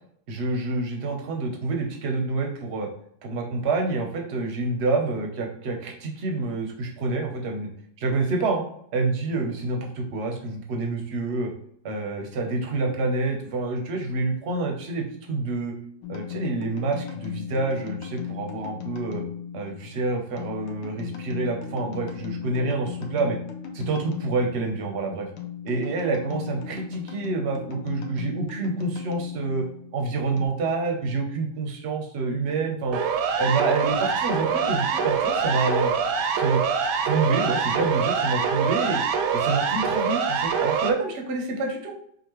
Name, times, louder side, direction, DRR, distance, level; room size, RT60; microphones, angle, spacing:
voice 1, 0.3-2.9 3.2-7.7 8.0-8.6 8.9-11.5 11.8-15.7 16.1-19.2 19.5-23.4 23.7-25.3 25.6-29.6 29.9-33.0 33.4-35.9 36.4-36.6 37.0-39.0 39.3-41.9, right 3 dB, 55° right, 2 dB, 0.7 m, -27 dB
sound 1, 16.0-30.5, left 9 dB, 75° left, 1.3 m, -37 dB
Siren, 32.9-40.9, right 6 dB, 75° right, 1.1 m, -24 dB
5.0 x 2.5 x 3.0 m, 0.66 s
omnidirectional pair, 2.0 m